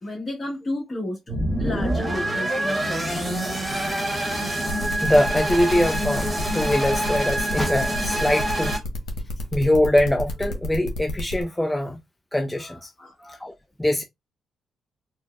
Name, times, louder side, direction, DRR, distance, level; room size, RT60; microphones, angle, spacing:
voice 1, 0.0-3.3 13.0-13.1, left 1 dB, 35° left, 1.3 m, -32 dB
sound 1, 1.3-8.8, right 1 dB, 15° right, 1.1 m, -26 dB
sound 2, 4.7-11.4, left 2 dB, 75° left, 1.0 m, -32 dB
voice 2, 4.8-8.8 9.5-12.0 12.3-12.9 13.2-13.5 13.8-14.0, left 1 dB, 10° left, 0.5 m, -23 dB
4.3 x 2.2 x 2.2 m
cardioid pair, 80°, 0 cm